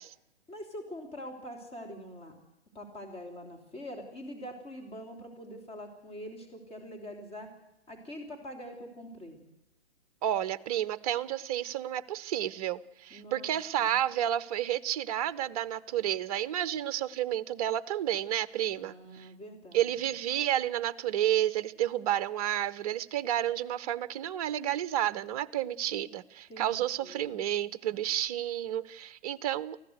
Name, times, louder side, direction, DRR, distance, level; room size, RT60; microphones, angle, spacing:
voice 1, 0.5-2.4 2.8-7.5 7.9-9.4 13.1-13.5 13.8-13.9 18.8-19.9 26.5-27.4, equal, 15° left, 2 dB, 3.3 m, -44 dB
voice 2, 10.2-19.3 19.7-29.8, right 12 dB, 35° right, 16 dB, 0.8 m, -31 dB
24.0 x 15.5 x 8.0 m, 0.87 s
hypercardioid pair, 140°, 34 cm